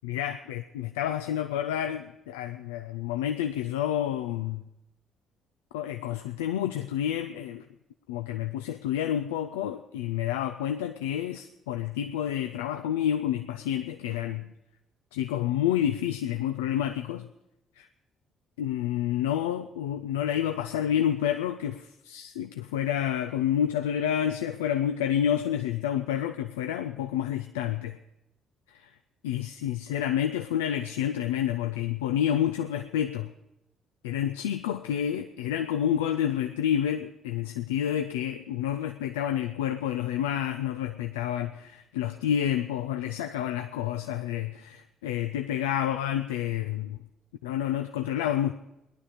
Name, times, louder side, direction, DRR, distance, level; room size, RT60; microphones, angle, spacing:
voice 1, 0.0-4.6 5.7-7.6 8.1-14.5 15.1-17.3 17.8-17.9 18.6-28.0 28.7-28.9 29.2-33.3 34.0-47.0 47.4-48.5, left 10 dB, 80° left, 7 dB, 0.5 m, -29 dB
18.5 x 11.0 x 5.0 m, 0.89 s
hypercardioid pair, 45°, 0 cm